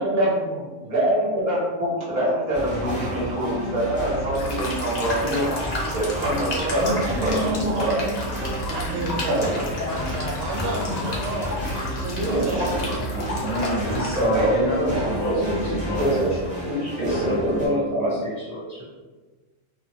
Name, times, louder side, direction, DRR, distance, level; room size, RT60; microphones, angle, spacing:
voice 1, 0.0-1.0 6.8-8.2 8.7-11.5 12.0-13.6 14.9-16.1, right 1 dB, 75° right, -2 dB, 1.0 m, -30 dB
voice 2, 0.9-5.5 5.9-7.9 9.2-9.5 12.3-12.9 14.1-14.9 15.3-16.3 16.6-18.1, right 1 dB, 45° right, -6 dB, 0.8 m, -25 dB
sound 1, 2.5-17.7, right 1 dB, 10° right, 0.5 m, -32 dB
sound 2, 4.3-14.3, left 2 dB, 65° left, 0.4 m, -32 dB
voice 3, 13.1-18.8, equal, 35° left, -8 dB, 0.8 m, -29 dB
2.6 x 2.1 x 2.6 m, 1.3 s
omnidirectional pair, 1.3 m